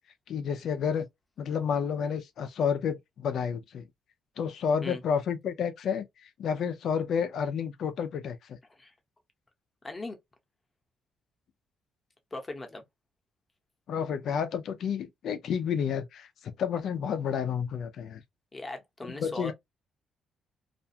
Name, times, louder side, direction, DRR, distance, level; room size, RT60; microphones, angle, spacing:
voice 1, 0.3-1.1 1.4-3.9 4.4-8.6 13.9-18.2 19.0-19.5, left 7 dB, 70° left, 0.5 m, -30 dB
voice 2, 9.8-10.2 12.3-12.8 18.5-19.5, left 2 dB, 25° left, 0.9 m, -39 dB
2.5 x 2.3 x 2.7 m
cardioid pair, 90°, 0 cm